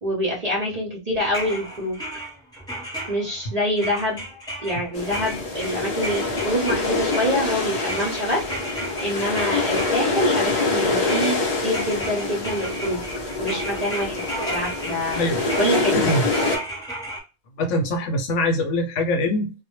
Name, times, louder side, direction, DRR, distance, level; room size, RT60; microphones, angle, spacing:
voice 1, 0.0-2.0 3.1-4.2 4.6-8.5 9.0-11.4 11.6-13.0 13.4-15.2 15.6-16.1, equal, 45° right, 0.5 m, -26 dB
sound 1, 1.2-3.5 3.8-10.2 10.5-17.2, right 1 dB, 5° left, 0.6 m, -34 dB
sound 2, 4.9-16.6, left 3 dB, 50° left, 0.5 m, -25 dB
voice 2, 15.9-16.3 17.6-19.5, left 1 dB, 80° left, 0.9 m, -23 dB
2.1 x 2.0 x 2.9 m
omnidirectional pair, 1.3 m